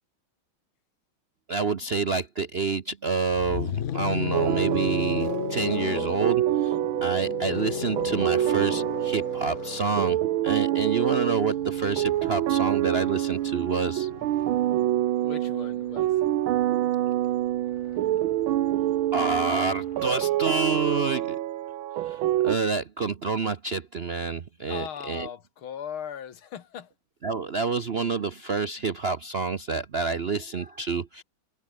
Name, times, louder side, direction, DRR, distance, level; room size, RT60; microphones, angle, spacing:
voice 1, 1.5-6.8 7.0-14.1 19.1-21.4 22.1-25.3 27.2-31.2, right 4 dB, 50° right, 0.7 m, -28 dB
sound 1, 3.3-15.3 16.5-20.1, left 9 dB, 55° left, 0.8 m, -36 dB
sound 2, 4.3-22.6, right 13 dB, 90° right, 1.7 m, -26 dB
voice 2, 15.2-16.2 24.6-26.9, left 8 dB, 90° left, 2.5 m, -39 dB
omnidirectional pair, 2.2 m